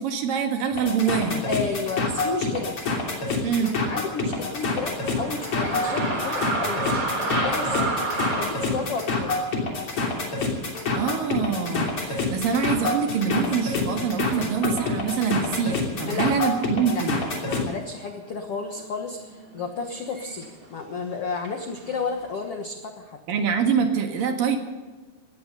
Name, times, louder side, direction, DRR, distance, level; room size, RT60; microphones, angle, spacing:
voice 1, 0.0-1.5 3.4-3.7 10.9-17.2 23.3-24.6, right 6 dB, 60° right, 4 dB, 3.2 m, -25 dB
sound 1, 0.7-17.7, left 3 dB, 35° left, 3.6 m, -27 dB
voice 2, 1.4-2.7 3.6-7.9 8.4-9.4 16.0-16.3 16.9-23.2, left 4 dB, 75° left, 4 dB, 1.3 m, -32 dB
sound 2, 3.6-11.2 11.6-11.7 12.5-12.9 13.7-13.8 14.0-15.8 16.1-16.6 16.9-20.7 21.4-22.3, right 3 dB, 35° right, 3.4 m, -32 dB
19.0 x 14.0 x 5.4 m, 1.3 s
omnidirectional pair, 4.7 m